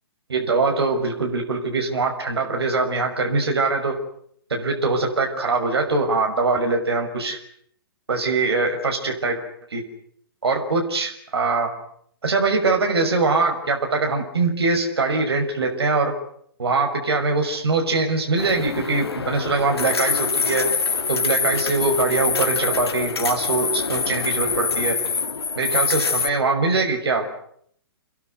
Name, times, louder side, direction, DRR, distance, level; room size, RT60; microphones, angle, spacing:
voice 1, 0.3-4.0 4.5-7.4 8.1-9.4 9.7-9.8 10.4-11.7 12.2-16.1 16.6-20.7 21.1-25.0 25.6-27.3, right 3 dB, 85° right, 3 dB, 6.1 m, -22 dB
sound 1, 18.4-26.3, left 5 dB, 90° left, 2.3 m, -25 dB
27.5 x 22.0 x 9.6 m, 0.68 s
hypercardioid pair, 130°, 13 cm